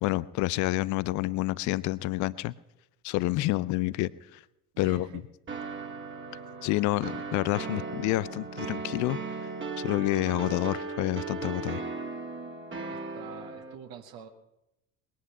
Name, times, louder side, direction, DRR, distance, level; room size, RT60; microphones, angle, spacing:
voice 1, 0.0-2.5 3.0-4.4 4.8-5.1 6.6-9.2 9.8-11.8, left 18 dB, 40° left, 20 dB, 0.6 m, -28 dB
voice 2, 4.7-5.2 12.9-14.3, right 7 dB, 50° right, 6 dB, 1.9 m, -45 dB
sound 1, 5.5-13.7, right 4 dB, 25° right, 2.2 m, -37 dB
21.0 x 10.5 x 5.7 m, 0.87 s
figure-of-eight pair, 60°, 47 cm